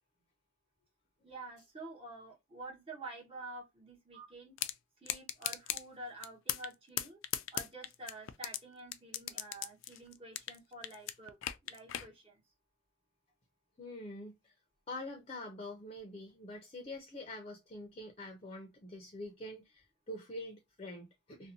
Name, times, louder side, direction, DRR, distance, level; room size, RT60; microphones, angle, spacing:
voice 1, 1.2-4.5 5.0-7.2 7.5-11.4 11.6-12.4, right 2 dB, 30° right, 1.1 m, -48 dB
sound 1, 4.6-4.7 5.1-5.8 6.2-6.7 7.0-8.6 8.9-10.6 10.8-12.1, left 12 dB, 85° left, 0.3 m, -36 dB
voice 2, 13.8-14.5 14.9-21.5, left 1 dB, 30° left, 0.5 m, -45 dB
2.6 x 2.1 x 2.6 m
head